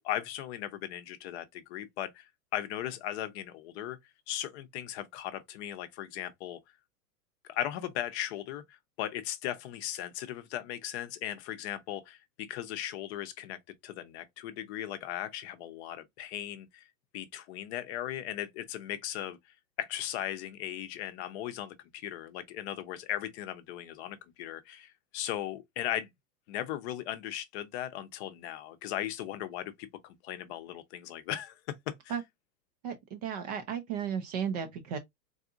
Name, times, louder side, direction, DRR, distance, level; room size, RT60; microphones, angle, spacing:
voice 1, 0.0-2.2 2.5-4.0 4.3-6.6 7.5-16.8 17.1-19.4 19.8-26.1 26.5-32.1, left 12 dB, 40° left, 0.6 m, -37 dB
voice 2, 32.8-35.0, right 7 dB, 30° right, 0.4 m, -34 dB
4.0 x 2.5 x 2.5 m
hypercardioid pair, 120°, 49 cm